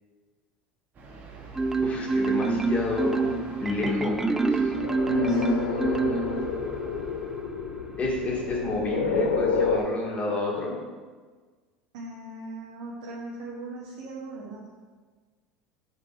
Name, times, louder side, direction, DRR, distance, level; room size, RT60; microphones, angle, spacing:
sound 1, 0.9-7.4, right 1 dB, 40° right, 1.5 m, -45 dB
Marimba xylophone, 1.6-6.7, right 3 dB, 10° right, 0.6 m, -26 dB
voice 1, 1.8-4.7 5.1-6.3 8.0-10.7, left 3 dB, 30° left, -3 dB, 2.4 m, -30 dB
sound 2, 4.7-9.8, left 5 dB, 75° left, 0.6 m, -30 dB
voice 2, 5.2-5.7 11.9-14.7, right 2 dB, 65° right, -4 dB, 1.3 m, -39 dB
7.5 x 5.2 x 4.5 m, 1.4 s
figure-of-eight pair, 75°, 4 cm